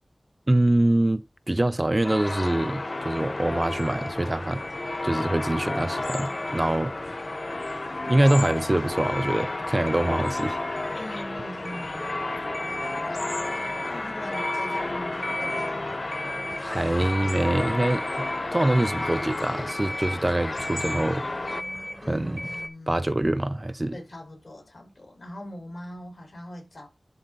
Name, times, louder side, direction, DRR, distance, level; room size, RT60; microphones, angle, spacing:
voice 1, 0.5-4.6 5.0-6.9 8.1-10.6 16.6-21.3 22.1-22.4 22.9-24.0, right 1 dB, 30° right, 0.5 m, -24 dB
sound 1, 2.0-21.6, left 2 dB, 50° left, 0.5 m, -31 dB
sound 2, 3.1-22.7, left 1 dB, ahead, 1.1 m, -39 dB
voice 2, 11.0-12.1 13.8-17.0 22.0-23.0 23.9-26.9, left 1 dB, 70° left, 4.4 m, -42 dB
11.5 x 3.9 x 3.8 m
wide cardioid pair, 65°, 0 cm